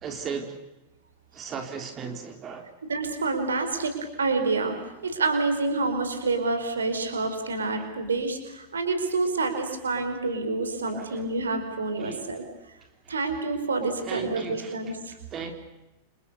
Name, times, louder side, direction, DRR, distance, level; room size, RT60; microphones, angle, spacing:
voice 1, 0.0-0.5 1.3-2.7 7.8-7.9 10.9-11.3 12.0-12.3 14.0-14.7 15.3-15.5, right 6 dB, 30° right, 5 dB, 3.4 m, -36 dB
voice 2, 2.9-12.4 13.1-15.1, right 3 dB, 70° right, 7 dB, 5.0 m, -28 dB
29.5 x 28.0 x 7.0 m, 1.0 s
figure-of-eight pair, 90°, 0 cm